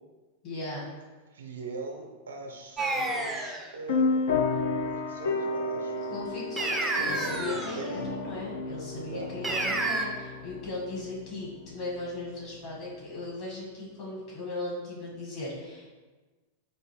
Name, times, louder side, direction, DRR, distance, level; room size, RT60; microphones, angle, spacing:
voice 1, 0.4-0.9 6.1-15.9, left 2 dB, 40° left, -5 dB, 1.5 m, -37 dB
voice 2, 1.3-4.4 4.8-6.2 7.2-8.1 9.0-9.6, right 3 dB, 65° right, 2 dB, 0.5 m, -42 dB
sound 1, 2.8-3.7 6.6-7.8 9.4-10.0, right 2 dB, 10° right, 0.4 m, -29 dB
sound 2, 3.9-12.0, left 3 dB, 60° left, 0.4 m, -32 dB
4.2 x 2.6 x 3.2 m, 1.3 s
figure-of-eight pair, 90°, 0 cm